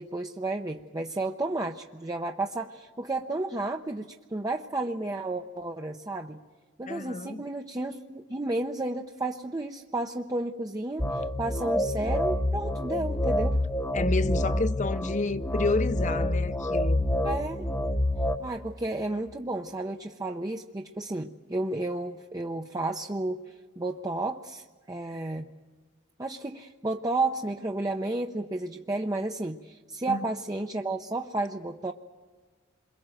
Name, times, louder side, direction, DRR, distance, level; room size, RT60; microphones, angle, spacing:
voice 1, 0.0-6.4 6.8-13.6 17.2-17.7 18.4-25.5 26.2-31.9, right 2 dB, 20° right, 0.7 m, -32 dB
voice 2, 6.9-7.4 13.9-17.1 30.1-30.3, left 3 dB, 40° left, 0.8 m, -30 dB
sound 1, 11.0-18.4, left 1 dB, 15° left, 1.0 m, -27 dB
28.5 x 22.5 x 7.7 m
head